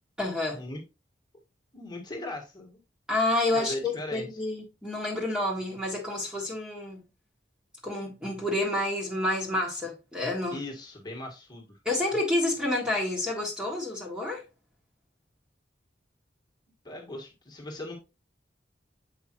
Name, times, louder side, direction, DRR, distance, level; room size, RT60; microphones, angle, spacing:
voice 1, 0.2-0.6 3.1-7.0 7.8-10.6 11.8-14.4, left 1 dB, 5° right, 1.6 m, -29 dB
voice 2, 1.7-2.8 3.5-4.3 10.5-11.8 16.8-18.0, left 1 dB, 25° left, 1.7 m, -38 dB
7.6 x 5.3 x 3.0 m
head